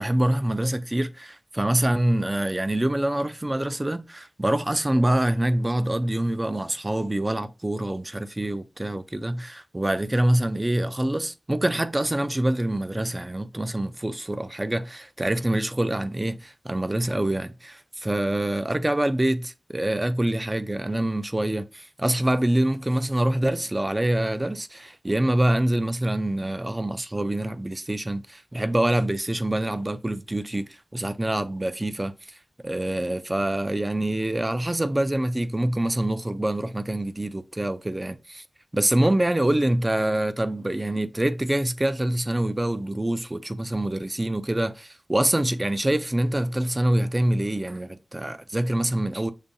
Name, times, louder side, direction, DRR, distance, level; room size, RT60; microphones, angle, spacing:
voice 1, 0.0-32.1 32.6-38.4 38.7-49.3, right 1 dB, 20° right, 0.4 m, -25 dB
6.6 x 2.6 x 2.6 m
wide cardioid pair, 90°, 0 cm